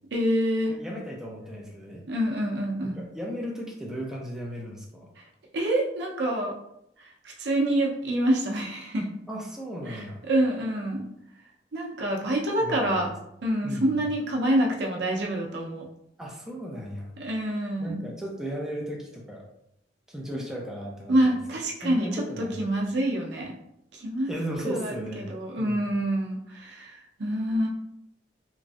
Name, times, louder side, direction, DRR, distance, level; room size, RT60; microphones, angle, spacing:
voice 1, 0.1-0.7 2.1-3.0 5.5-6.5 7.0-7.1 7.4-9.1 9.9-11.1 11.7-13.1 13.4-15.9 17.2-18.1 20.3-20.4 21.1-22.2 22.6-23.5 23.9-24.3 24.6-27.7, right 1 dB, 65° right, -1 dB, 0.6 m, -26 dB
voice 2, 0.7-2.0 2.8-5.1 9.3-10.2 12.6-13.1 13.6-14.1 16.2-17.1 17.8-19.5 20.1-21.4 21.8-22.6 24.3-25.3 25.6-25.9, equal, 5° right, -3 dB, 0.5 m, -36 dB
3.1 x 2.4 x 2.5 m, 0.78 s
head